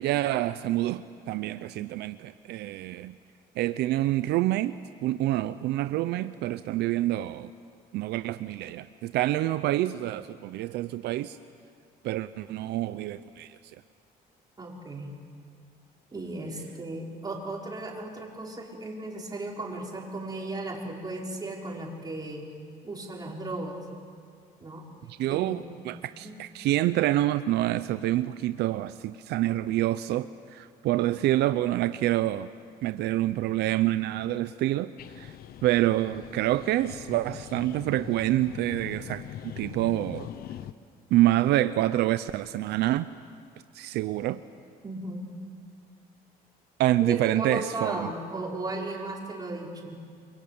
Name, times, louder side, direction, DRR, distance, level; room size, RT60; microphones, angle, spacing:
voice 1, 0.0-3.1 3.6-4.8 5.0-7.5 7.9-11.4 12.0-13.6 25.2-32.5 32.8-35.3 35.6-40.3 41.1-43.1 43.7-44.4 46.8-48.1, right 15 dB, 80° right, 13 dB, 0.7 m, -27 dB
voice 2, 14.6-15.1 16.1-22.5 22.8-23.8 24.6-24.9 25.3-25.6 26.1-26.3 44.8-45.3 47.0-50.0, right 2 dB, 25° right, -1 dB, 5.7 m, -36 dB
sound 1, 35.0-40.7, left 11 dB, 65° left, 1.0 m, -42 dB
29.0 x 23.0 x 8.8 m, 2.2 s
cardioid pair, 110°, 17 cm